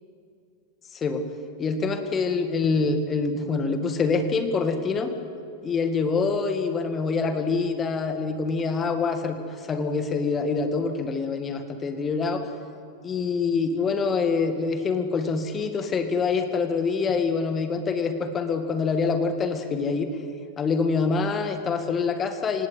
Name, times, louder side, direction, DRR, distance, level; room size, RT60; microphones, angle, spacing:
voice 1, 0.9-1.3 1.6-5.1 5.6-12.5 13.0-20.1 20.6-22.7, left 4 dB, 25° left, 7 dB, 2.1 m, -25 dB
27.0 x 18.5 x 8.0 m, 2.5 s
figure-of-eight pair, 90°, 0 cm